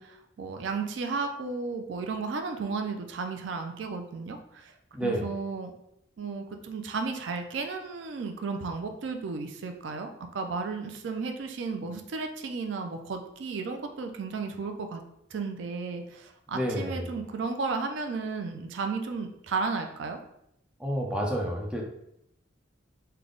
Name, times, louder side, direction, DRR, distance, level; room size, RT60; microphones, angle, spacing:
voice 1, 0.0-4.7 5.0-5.7 6.2-10.1 10.3-15.0 15.3-20.2, right 4 dB, 75° right, 5 dB, 0.4 m, -34 dB
voice 2, 4.9-5.3 16.5-17.1 20.8-21.8, equal, 5° right, -1 dB, 0.5 m, -29 dB
3.4 x 2.2 x 3.7 m, 0.79 s
head